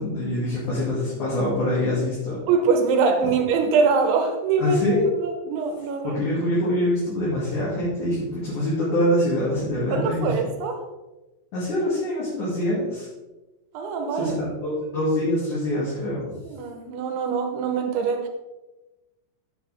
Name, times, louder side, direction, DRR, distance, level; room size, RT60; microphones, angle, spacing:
voice 1, 0.0-2.4 4.6-5.1 6.0-10.3 11.5-13.1 14.2-16.4, left 1 dB, 50° left, -8 dB, 3.4 m, -24 dB
voice 2, 2.5-4.8 5.2-6.2 9.9-10.8 13.7-14.4 16.4-18.3, right 5 dB, 90° right, 4 dB, 3.4 m, -23 dB
9.2 x 8.3 x 3.5 m, 1.1 s
omnidirectional pair, 5.3 m